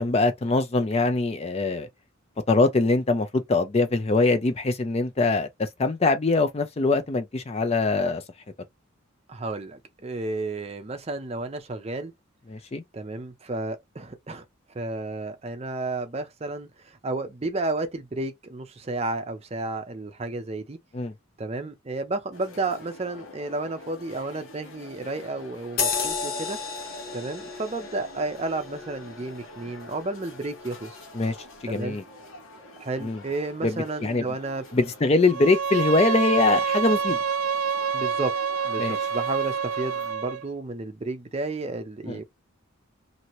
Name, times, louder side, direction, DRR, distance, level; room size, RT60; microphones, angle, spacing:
voice 1, 0.0-1.9 2.5-8.2 12.5-12.8 20.9-21.1 31.1-31.4 31.6-32.0 33.0-33.2 33.6-34.3 34.7-37.2 38.8-39.0 42.1-42.2, left 3 dB, 30° left, 0.4 m, -23 dB
voice 2, 9.3-12.1 12.9-14.4 14.7-20.8 21.4-26.6 27.1-30.9 31.7-32.0 32.6-34.6 37.9-38.3 38.6-42.2, right 2 dB, 30° right, 0.5 m, -32 dB
sound 1, 22.3-40.1, left 2 dB, 75° left, 1.0 m, -47 dB
sound 2, 25.8-30.7 31.2-31.3, left 5 dB, 45° left, 1.1 m, -33 dB
Bowed string instrument, 35.3-40.4, right 6 dB, 90° right, 0.4 m, -27 dB
2.9 x 2.6 x 2.9 m
head